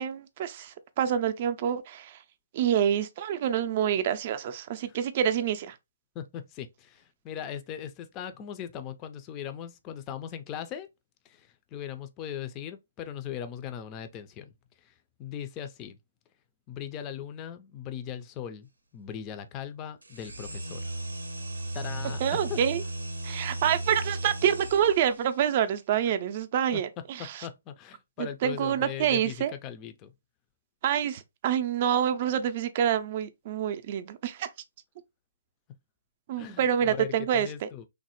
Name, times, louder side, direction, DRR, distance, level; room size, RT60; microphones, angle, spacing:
voice 1, 0.0-2.2 2.5-5.8 22.2-22.8 23.2-27.5 28.2-29.5 30.8-34.5 36.3-37.7, right 9 dB, 40° right, 0.4 m, -27 dB
voice 2, 6.1-10.9 11.3-14.5 14.8-14.9 15.2-16.0 16.7-20.8 21.7-22.6 26.7-26.8 27.2-30.1 36.4-37.9, left 9 dB, 25° left, 0.4 m, -39 dB
sound 1, 20.0-25.3, right 1 dB, 90° right, 0.6 m, -36 dB
3.1 x 2.0 x 2.9 m
figure-of-eight pair, 135°, 0 cm